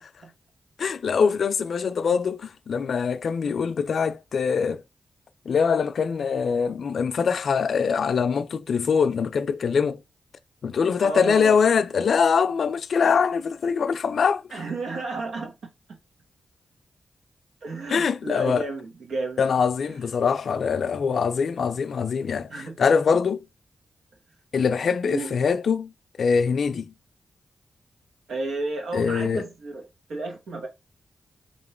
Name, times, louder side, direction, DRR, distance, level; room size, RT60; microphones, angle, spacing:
voice 1, 0.8-4.8 5.5-10.0 10.6-14.6 17.9-18.7 19.4-23.4 24.5-25.9 26.2-26.9 28.9-29.5, left 6 dB, 70° left, 0.3 m, -23 dB
voice 2, 11.0-11.6 14.5-15.5 17.6-19.4 22.5-22.8 25.0-25.3 28.3-30.7, right 3 dB, 85° right, 1.3 m, -32 dB
3.0 x 2.8 x 4.3 m
cardioid pair, 50°, 0 cm